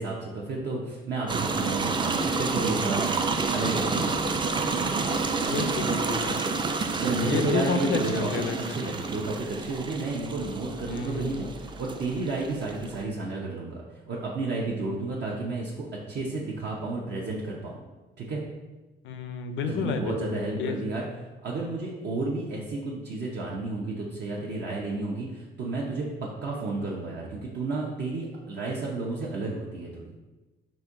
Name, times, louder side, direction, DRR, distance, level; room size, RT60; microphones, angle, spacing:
voice 1, 0.0-4.1 4.8-5.2 7.0-13.8 14.1-17.8 18.2-18.4 19.6-21.1 21.4-30.1, right 2 dB, 60° right, -3 dB, 0.7 m, -32 dB
sound 1, 1.3-13.0, right 4 dB, 25° right, 0.3 m, -29 dB
voice 2, 5.4-6.4 7.2-8.6 10.9-11.5 19.0-20.8, left 5 dB, 75° left, 8 dB, 0.4 m, -30 dB
4.2 x 2.6 x 3.6 m, 1.1 s
cardioid pair, 90°, 20 cm